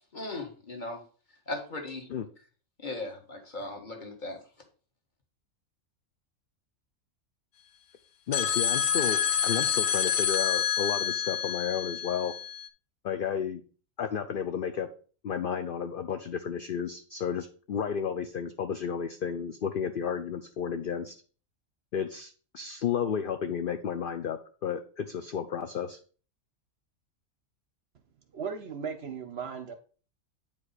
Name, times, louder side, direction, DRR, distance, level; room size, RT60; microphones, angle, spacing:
voice 1, 0.1-1.0 1.5-2.1 2.8-4.4, left 2 dB, 35° left, 1.6 m, -37 dB
sound 1, 8.3-12.7, left 8 dB, 75° left, 1.1 m, -28 dB
voice 2, 8.3-12.3 13.0-13.6 14.0-14.9 15.2-21.2 21.9-26.0, left 7 dB, 60° left, 0.6 m, -32 dB
voice 3, 28.3-29.7, right 6 dB, 55° right, 0.8 m, -36 dB
8.8 x 4.9 x 4.1 m
omnidirectional pair, 1.4 m